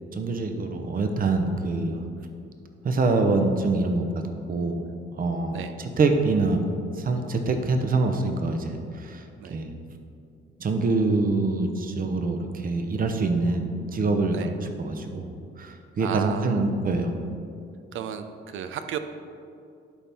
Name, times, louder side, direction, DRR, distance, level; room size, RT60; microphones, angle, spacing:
voice 1, 0.2-2.0 2.8-4.1 4.5-4.9 5.2-6.6 7.0-9.2 9.5-9.7 10.6-15.3 15.6-17.1, right 3 dB, 45° right, 5 dB, 0.9 m, -25 dB
voice 2, 16.0-16.7 17.9-19.0, right 9 dB, 80° right, 9 dB, 0.5 m, -33 dB
11.5 x 4.3 x 3.5 m, 2.5 s
cardioid pair, 90°, 20 cm